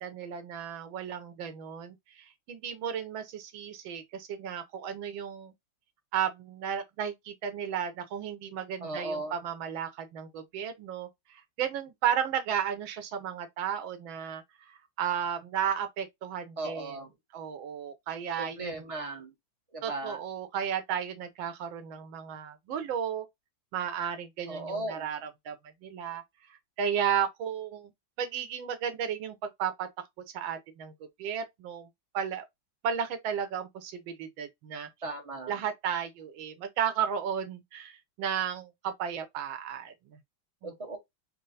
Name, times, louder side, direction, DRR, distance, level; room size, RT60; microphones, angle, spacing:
voice 1, 0.0-5.5 6.1-17.0 17.3-18.8 19.8-23.3 23.7-25.5 25.8-26.2 26.8-27.9 28.2-29.9 30.3-30.9 31.2-31.9 32.1-32.4 32.8-34.9 35.5-40.2 40.6-40.7, right 8 dB, 85° right, 1.6 m, -34 dB
voice 2, 8.8-9.3 16.6-17.1 18.4-19.3 19.7-20.2 24.5-25.1 35.0-35.6 40.6-41.0, right 2 dB, 45° right, 0.4 m, -36 dB
4.4 x 2.1 x 3.9 m
omnidirectional pair, 2.1 m